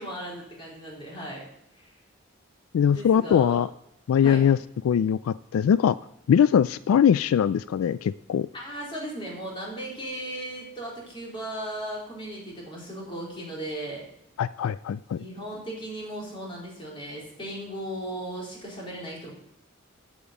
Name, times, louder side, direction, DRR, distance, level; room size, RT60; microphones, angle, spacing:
voice 1, 0.0-1.5 1.7-1.9 2.9-3.6 4.2-4.4 8.5-14.0 15.2-19.3, right 1 dB, 25° left, -4 dB, 4.1 m, -36 dB
voice 2, 2.7-3.7 4.1-4.6 4.8-6.0 6.3-8.5 14.4-15.2, left 8 dB, 85° left, 16 dB, 0.3 m, -21 dB
8.5 x 7.2 x 8.2 m, 0.79 s
head